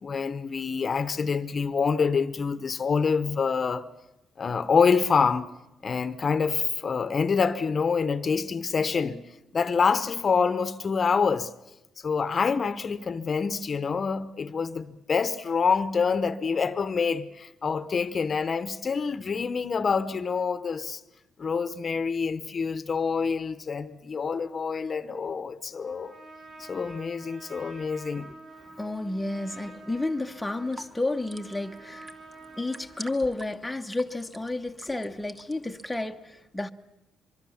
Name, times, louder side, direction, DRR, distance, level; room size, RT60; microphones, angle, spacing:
voice 1, 0.0-3.9 4.4-5.5 5.8-9.2 9.5-11.5 12.0-21.0 21.4-26.1 26.6-28.3, left 5 dB, 40° left, 0.9 m, -26 dB
Trumpet, 25.8-33.4, right 2 dB, 50° right, 6.7 m, -48 dB
voice 2, 28.6-32.1 32.6-36.7, left 2 dB, 10° left, 1.0 m, -31 dB
sound 1, 30.4-36.0, right 2 dB, 30° right, 1.4 m, -47 dB
23.5 x 23.0 x 7.2 m
cardioid pair, 90°, 0 cm